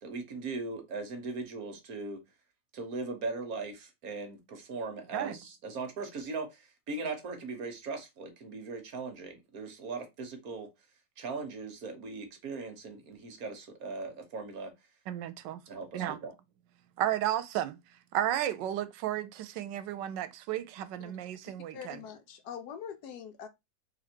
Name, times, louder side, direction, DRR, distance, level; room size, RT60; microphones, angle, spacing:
voice 1, 0.0-2.2 2.7-10.7 11.2-14.7 15.7-16.3, right 3 dB, 60° right, 1.4 m, -39 dB
voice 2, 15.1-15.6 15.9-16.2 17.0-17.8 18.1-22.0, right 12 dB, 85° right, 1.3 m, -33 dB
voice 3, 21.7-23.5, left 8 dB, 70° left, 1.1 m, -43 dB
4.0 x 2.9 x 4.3 m
omnidirectional pair, 1.9 m